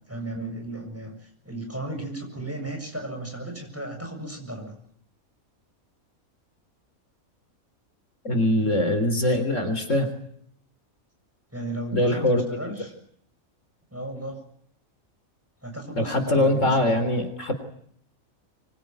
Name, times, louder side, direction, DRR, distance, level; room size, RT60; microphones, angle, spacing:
voice 1, 0.1-1.1 1.4-4.7 8.6-8.7 11.5-12.9 13.9-14.4 15.6-16.9, right 1 dB, 10° right, 3 dB, 7.4 m, -35 dB
voice 2, 8.2-10.1 11.9-12.7 16.0-17.5, left 1 dB, 60° left, 7 dB, 3.9 m, -23 dB
25.5 x 23.5 x 9.3 m, 0.68 s
omnidirectional pair, 1.5 m